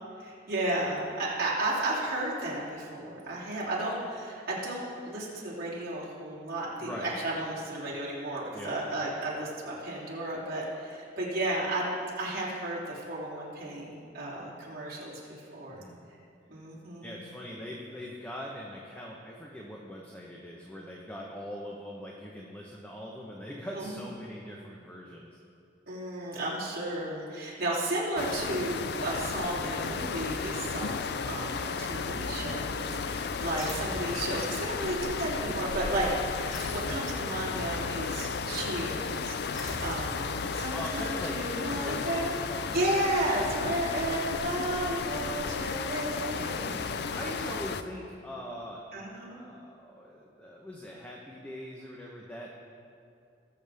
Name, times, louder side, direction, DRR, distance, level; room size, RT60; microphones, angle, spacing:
voice 1, 0.2-11.9 12.2-15.8 16.5-17.1 23.7-24.0 25.9-42.4 42.7-47.1 48.9-49.4, right 1 dB, 55° right, -7 dB, 3.0 m, -33 dB
voice 2, 6.8-7.1 8.5-8.8 15.7-16.0 17.0-25.4 40.7-42.9 46.5-48.8 49.3-52.6, equal, 10° left, -2 dB, 0.9 m, -42 dB
sound 1, 28.2-47.8, left 5 dB, 60° left, 0.4 m, -34 dB
sound 2, 33.6-34.2 36.5-37.1 39.5-40.2, left 1 dB, 90° left, 2.6 m, -40 dB
20.0 x 7.1 x 3.5 m, 2.5 s
head